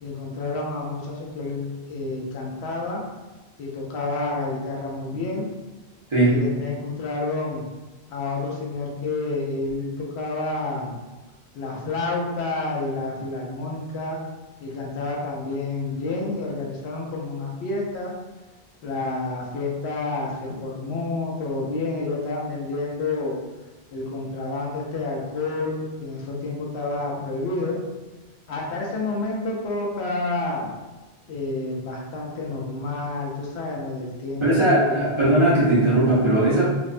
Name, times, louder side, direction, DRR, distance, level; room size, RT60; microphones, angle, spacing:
voice 1, 0.0-3.0 3.6-5.4 6.3-7.6 8.1-11.0 11.5-14.2 14.6-18.1 18.8-23.4 23.9-27.8 28.5-30.7 31.3-35.1, left 3 dB, 80° left, -2 dB, 0.9 m, -29 dB
voice 2, 34.4-36.6, right 1 dB, 35° right, -9 dB, 0.5 m, -18 dB
2.6 x 2.1 x 2.4 m, 1.1 s
omnidirectional pair, 1.1 m